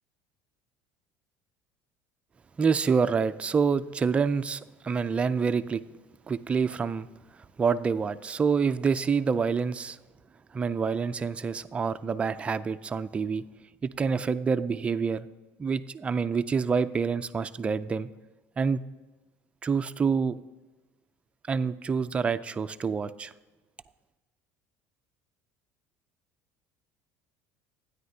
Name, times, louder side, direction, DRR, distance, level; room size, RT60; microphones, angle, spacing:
voice 1, 2.6-5.8 6.3-7.1 7.6-10.0 10.5-13.4 13.8-15.3 15.6-18.1 18.6-18.8 19.6-20.4 21.5-23.3, right 5 dB, 20° right, 11 dB, 0.3 m, -27 dB
13.0 x 9.3 x 2.7 m, 1.2 s
cardioid pair, 135°, 6 cm